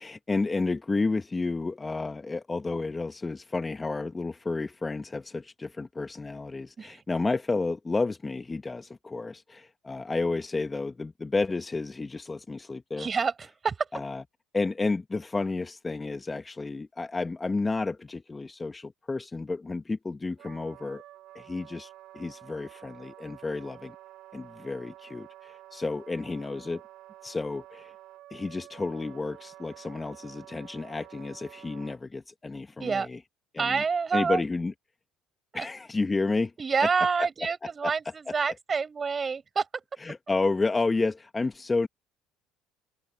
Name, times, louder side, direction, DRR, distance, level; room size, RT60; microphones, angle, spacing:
voice 1, 0.0-13.1 13.9-14.2 14.5-21.0 21.4-24.0 24.3-26.8 27.2-27.9 28.3-33.2 33.5-33.8 34.1-34.7 35.5-36.5 37.8-37.9 40.0-41.9, left 3 dB, 20° left, 1.7 m, -31 dB
voice 2, 13.0-13.9 32.8-33.1 33.6-34.4 35.5-35.7 36.6-39.7, right 5 dB, 30° right, 7.0 m, -28 dB
Wind instrument woodwind instrument, 20.4-32.0, right 14 dB, 65° right, 7.8 m, -50 dB
hypercardioid pair, 70°, 0 cm